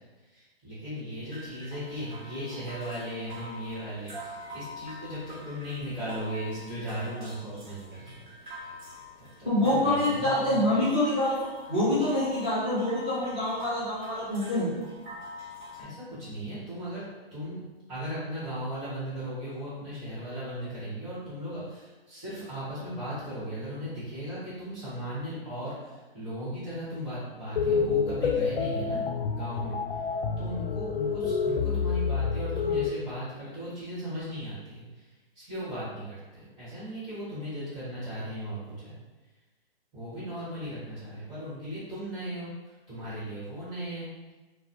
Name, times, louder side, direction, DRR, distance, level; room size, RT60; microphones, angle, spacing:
voice 1, 0.2-8.2 8.6-8.7 9.2-10.7 15.7-17.6 17.9-30.1 30.4-35.1 35.3-38.9 39.9-44.3, equal, 15° right, -13 dB, 1.3 m, -37 dB
sound 1, 1.3-15.8, left 1 dB, 55° right, 0.9 m, -45 dB
voice 2, 9.4-11.4 11.7-14.7, left 1 dB, 10° left, -16 dB, 0.3 m, -26 dB
sound 2, 27.6-32.9, left 5 dB, 75° left, 0.5 m, -28 dB
3.0 x 2.3 x 2.6 m, 1.2 s
hypercardioid pair, 165°, 30 cm